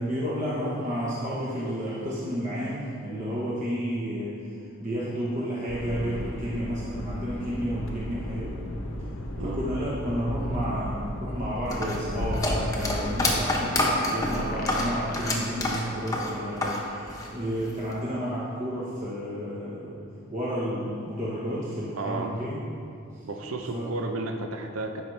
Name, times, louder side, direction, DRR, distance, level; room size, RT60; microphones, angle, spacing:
voice 1, 0.0-4.4 4.8-8.6 9.4-20.0 20.3-22.6 23.7-23.9, equal, 35° right, -7 dB, 1.1 m, -31 dB
sound 1, 5.7-13.2, left 1 dB, 70° left, 1.0 m, -34 dB
sound 2, 11.7-16.8 17.1-17.9, left 2 dB, 15° left, 1.0 m, -28 dB
sound 3, 14.2-16.3, equal, 45° left, 0.7 m, -37 dB
voice 2, 22.0-22.3 23.2-25.0, right 2 dB, 80° right, 4 dB, 0.7 m, -32 dB
12.0 x 5.4 x 3.3 m, 2.5 s
head